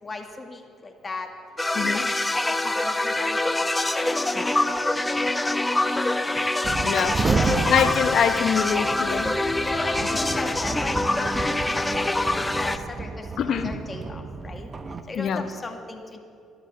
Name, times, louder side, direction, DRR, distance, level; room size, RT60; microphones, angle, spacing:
voice 1, 0.0-1.3 1.8-2.1 2.4-3.4 3.8-5.7 6.1-6.4 7.4-7.6 9.1-12.3 12.5-13.3 13.6-14.7 15.1-16.2, left 2 dB, 30° left, 4 dB, 2.0 m, -36 dB
sound 1, 1.6-12.8, left 2 dB, 15° left, 0.8 m, -25 dB
voice 2, 1.7-2.1 6.8-7.2 7.7-9.4 13.4-13.7 15.1-15.5, left 8 dB, 65° left, 10 dB, 0.9 m, -24 dB
sound 2, 6.6-15.0, right 4 dB, 35° right, 0.8 m, -31 dB
12.0 x 11.5 x 7.3 m, 2.5 s
supercardioid pair, 65°, 0 cm